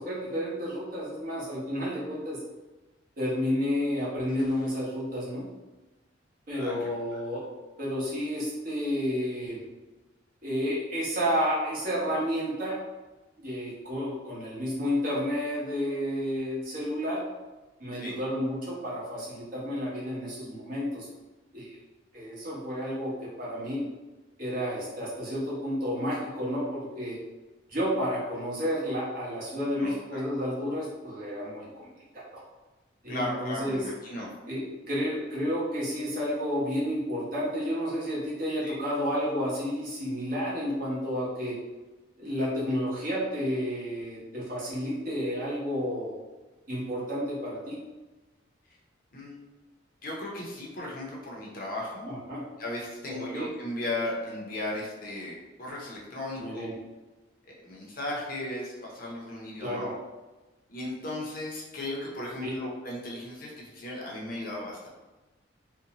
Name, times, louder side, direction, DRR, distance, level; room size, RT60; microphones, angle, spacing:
voice 1, 0.0-2.4 3.2-5.4 6.5-7.5 7.8-9.6 10.4-12.8 13.4-17.2 17.8-21.1 21.5-21.8 22.1-23.1 23.4-23.8 24.4-27.2 27.7-31.9 32.1-32.4 33.0-33.8 34.5-41.6 42.2-46.2 46.7-47.8 52.1-52.4 53.1-53.5 56.4-56.7 59.6-59.9 62.4-62.5, equal, 45° right, -7 dB, 0.9 m, -31 dB
voice 2, 29.7-30.2 33.1-34.3 38.6-38.7 49.1-49.3 50.0-52.1 52.6-56.6 57.5-60.0 60.7-64.9, left 1 dB, 45° left, -3 dB, 0.6 m, -36 dB
2.6 x 2.1 x 2.8 m, 1.2 s
head